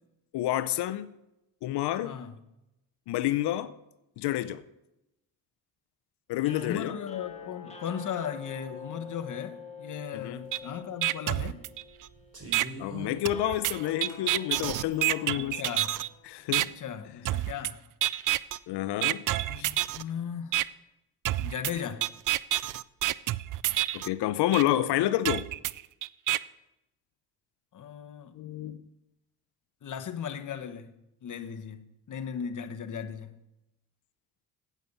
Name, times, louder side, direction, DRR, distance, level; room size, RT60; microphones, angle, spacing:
voice 1, 0.3-1.1 1.6-2.1 3.1-3.7 4.2-4.6 6.3-7.0 10.1-10.4 12.8-15.6 16.2-16.7 18.7-19.2 19.6-19.7 23.9-25.5 28.3-28.8, left 13 dB, 75° left, 0.7 m, -29 dB
voice 2, 2.0-2.4 6.6-11.6 15.3-15.9 16.8-17.8 19.5-20.6 21.4-22.1 27.7-28.3 29.8-30.9 31.2-33.3, left 8 dB, 50° left, 1.1 m, -37 dB
sound 1, 6.4-16.6, left 5 dB, 15° left, 1.7 m, -47 dB
sound 2, 10.5-10.6 11.1-11.4 11.9-14.2 14.9-15.4, right 2 dB, 35° right, 3.7 m, -44 dB
sound 3, 10.5-10.6 11.0-12.1 12.5-12.7 13.3-16.1 16.5-16.7 17.3-17.7 18.0-18.6 19.0-20.0 20.5-20.6 21.3-24.1 24.5-24.6 25.3-26.4, right 14 dB, 50° right, 0.4 m, -28 dB
9.0 x 8.6 x 5.4 m
supercardioid pair, 75°, 41 cm